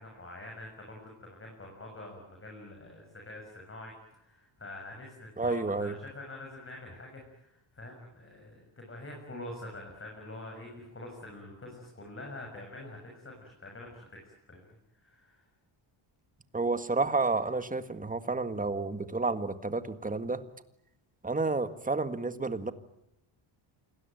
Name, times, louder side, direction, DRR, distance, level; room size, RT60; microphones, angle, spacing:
voice 1, 0.0-14.8 15.0-15.4, left 1 dB, 25° left, 1 dB, 7.1 m, -46 dB
voice 2, 5.4-5.9 16.5-20.4 21.2-22.7, right 3 dB, 15° right, 11 dB, 1.8 m, -30 dB
28.0 x 20.5 x 9.2 m, 0.81 s
cardioid pair, 140°, 49 cm